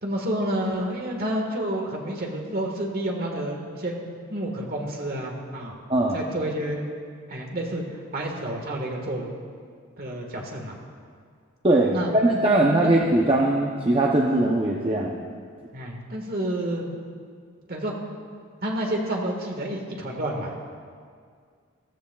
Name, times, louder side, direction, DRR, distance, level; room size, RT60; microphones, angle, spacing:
voice 1, 0.0-4.0 4.3-5.7 6.1-6.8 7.3-7.8 8.1-9.3 10.0-10.8 11.9-12.1 12.6-12.9 15.7-16.9 17.7-17.9 18.6-20.5, right 1 dB, 45° right, 1 dB, 1.5 m, -29 dB
voice 2, 11.6-15.2, right 1 dB, 25° right, -2 dB, 0.6 m, -21 dB
15.5 x 14.0 x 2.3 m, 2.1 s
head